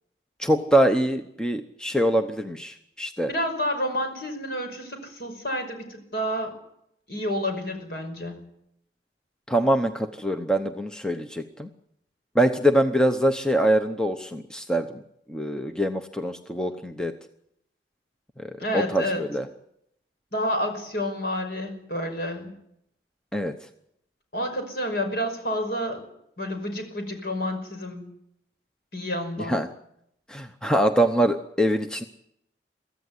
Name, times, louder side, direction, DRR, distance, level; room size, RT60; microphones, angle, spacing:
voice 1, 0.4-3.3 9.5-11.7 12.3-15.0 15.3-17.1 18.4-19.5 23.3-23.5 29.4-29.7 30.3-32.0, right 1 dB, 5° left, 6 dB, 0.9 m, -24 dB
voice 2, 3.3-6.5 7.1-8.4 18.6-19.2 20.3-22.5 24.3-26.0 26.4-28.1 28.9-29.6, left 1 dB, 60° left, 5 dB, 5.5 m, -29 dB
24.0 x 15.0 x 9.7 m, 0.78 s
head